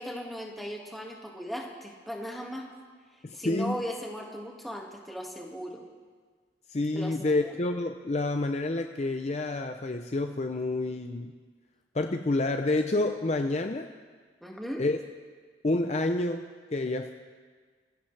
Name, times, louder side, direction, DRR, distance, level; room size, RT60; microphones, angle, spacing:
voice 1, 0.0-2.7 3.3-5.8 6.9-7.5 14.4-14.8, equal, ahead, -1 dB, 1.9 m, -37 dB
voice 2, 3.2-3.8 6.7-11.3 11.9-13.9 14.8-15.0 15.6-17.1, left 2 dB, 35° left, 6 dB, 0.5 m, -28 dB
26.5 x 15.5 x 3.3 m, 1.5 s
head